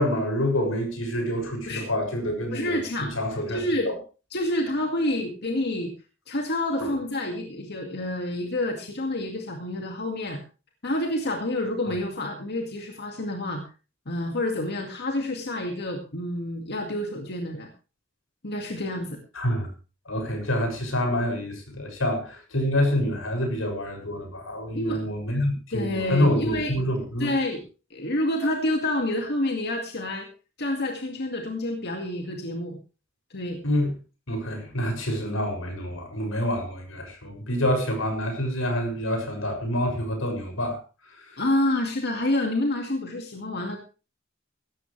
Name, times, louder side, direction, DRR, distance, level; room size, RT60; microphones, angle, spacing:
voice 1, 0.0-3.9 6.8-6.9 19.3-19.7 20.0-27.3 33.6-33.9 34.3-40.8 41.2-41.4, left 1 dB, 85° left, 4 dB, 6.9 m, -27 dB
voice 2, 2.5-3.1 3.5-3.9 4.3-5.9 6.3-10.4 10.8-13.6 14.1-17.7 18.4-19.2 24.7-25.0 25.7-26.7 27.2-27.6 27.9-30.3 30.6-32.8 33.3-33.6 41.4-43.8, left 1 dB, 55° left, 3 dB, 2.2 m, -28 dB
17.5 x 14.0 x 3.3 m, 0.34 s
head